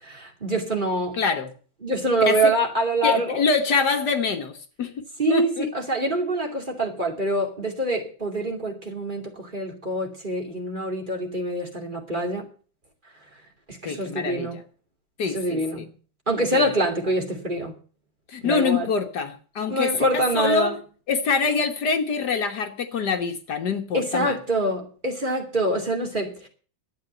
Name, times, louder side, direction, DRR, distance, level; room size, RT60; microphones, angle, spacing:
voice 1, 0.0-1.2 1.8-3.4 5.2-12.5 13.7-14.6 15.2-15.9 16.3-17.7 18.4-18.9 19.7-20.7 23.9-26.5, right 1 dB, 25° right, 2.8 m, -25 dB
voice 2, 1.2-1.5 2.2-2.4 3.0-4.9 5.3-5.7 13.9-14.5 15.2-15.8 16.5-16.6 18.3-19.9 20.4-20.7 21.1-24.4, left 5 dB, 60° left, 1.8 m, -25 dB
12.0 x 8.6 x 7.8 m
omnidirectional pair, 2.0 m